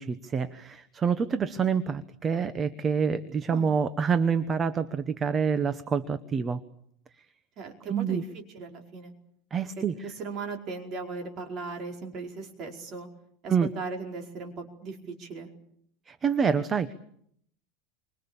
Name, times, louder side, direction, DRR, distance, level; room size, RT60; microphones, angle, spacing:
voice 1, 0.0-6.6 7.9-8.2 9.5-10.1 13.5-13.7 16.1-16.9, right 6 dB, 20° right, 12 dB, 1.0 m, -27 dB
voice 2, 7.6-9.1 9.8-13.1 13.4-15.5, right 4 dB, 40° right, 2 dB, 4.9 m, -38 dB
29.0 x 25.0 x 7.1 m, 0.70 s
supercardioid pair, 155°, 0 cm